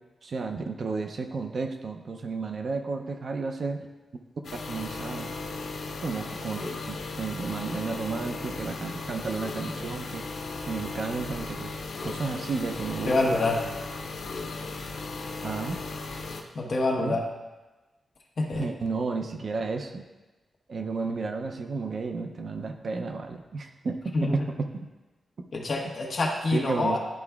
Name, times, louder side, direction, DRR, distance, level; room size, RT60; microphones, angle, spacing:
voice 1, 0.2-3.9 4.7-5.3 6.0-10.3 10.6-11.8 12.0-13.4 15.4-15.8 17.0-17.2 18.5-20.0 20.7-24.3 24.6-24.9 26.5-27.0, right 4 dB, 45° right, 5 dB, 0.5 m, -32 dB
sound 1, 4.4-16.4, left 3 dB, 85° left, 0.7 m, -36 dB
voice 2, 13.1-13.7 16.5-17.2 18.4-18.7 24.1-24.4 25.5-27.0, left 2 dB, 40° left, -1 dB, 1.1 m, -26 dB
11.5 x 4.7 x 2.3 m, 1.2 s
wide cardioid pair, 175°, 0 cm